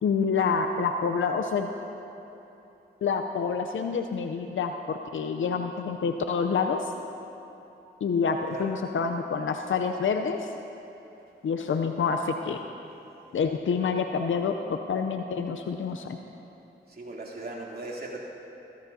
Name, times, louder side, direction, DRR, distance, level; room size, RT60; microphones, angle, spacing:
voice 1, 0.0-1.7 3.0-6.9 8.0-10.5 11.4-12.6 13.3-16.2, left 5 dB, 70° left, 6 dB, 0.6 m, -27 dB
voice 2, 17.0-18.2, right 2 dB, 50° right, -4 dB, 2.9 m, -37 dB
15.5 x 14.0 x 2.7 m, 3.0 s
cardioid pair, 40°, 21 cm